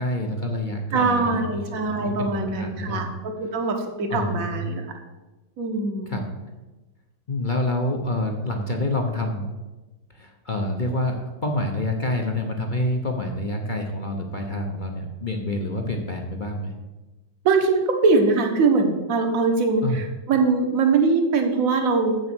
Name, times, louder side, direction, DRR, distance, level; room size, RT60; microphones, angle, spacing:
voice 1, 0.0-3.1 4.1-4.7 6.1-6.2 7.3-9.5 10.1-16.7 19.8-20.0, left 1 dB, 40° left, 2 dB, 0.7 m, -27 dB
voice 2, 0.9-4.8 5.6-6.1 17.4-22.2, right 4 dB, 55° right, 4 dB, 1.5 m, -22 dB
7.6 x 6.7 x 6.1 m, 1.1 s
omnidirectional pair, 1.9 m